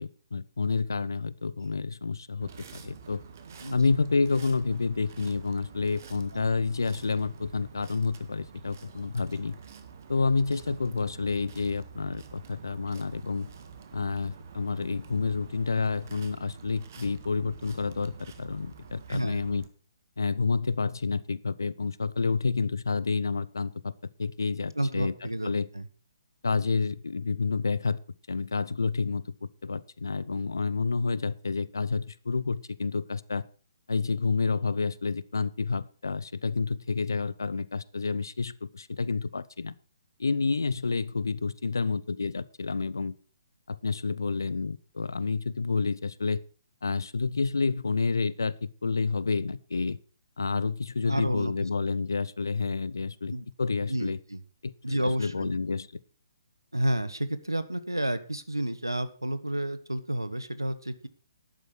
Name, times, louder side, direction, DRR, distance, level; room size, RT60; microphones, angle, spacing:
voice 1, 0.0-3.2 3.7-9.6 10.1-13.5 13.9-19.7 20.2-23.9 24.2-25.1 25.4-25.7 26.4-28.0 28.3-33.4 33.9-39.7 40.2-43.1 43.7-46.4 46.8-50.0 50.4-53.3 53.6-54.2 54.6-54.7 55.0-55.9, left 4 dB, 70° left, 19 dB, 0.7 m, -29 dB
sound 1, 2.4-19.7, right 6 dB, 45° right, 1.7 m, -48 dB
voice 2, 19.1-19.4 24.7-25.5 25.7-25.9 51.1-51.5 53.3-53.5 53.9-54.4 54.8-55.5 56.7-61.1, right 1 dB, 90° right, 13 dB, 1.2 m, -30 dB
11.5 x 8.2 x 6.0 m, 0.39 s
figure-of-eight pair, 130°, 2 cm